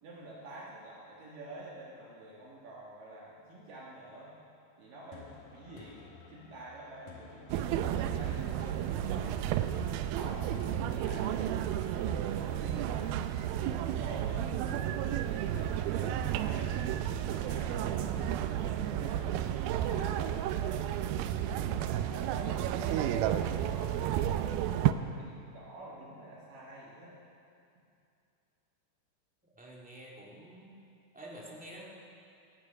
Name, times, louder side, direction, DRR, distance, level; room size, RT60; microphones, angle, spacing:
voice 1, 0.0-4.3 4.8-6.0 6.3-9.3 9.9-11.4 11.8-13.1 13.6-14.5 14.8-18.3 18.8-21.5 21.8-23.1 23.4-24.4 24.7-27.2, right 2 dB, 65° right, -5 dB, 3.3 m, -48 dB
sound 1, 5.1-20.1, left 5 dB, 65° left, 2.6 m, -53 dB
sound 2, 7.5-24.9, right 11 dB, 85° right, 2.4 m, -32 dB
voice 2, 29.5-30.8 31.1-31.9, right 1 dB, 5° right, -4 dB, 1.1 m, -48 dB
17.0 x 15.0 x 5.5 m, 2.6 s
omnidirectional pair, 4.4 m